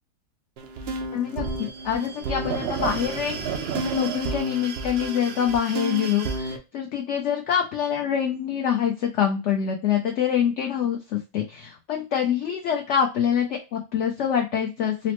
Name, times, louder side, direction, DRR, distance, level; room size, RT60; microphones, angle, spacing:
sound 1, 0.6-6.6, right 3 dB, 90° right, 0.5 m, -30 dB
voice 1, 1.1-15.1, left 8 dB, 70° left, 2 dB, 0.7 m, -25 dB
4.0 x 2.0 x 2.9 m, 0.28 s
omnidirectional pair, 1.7 m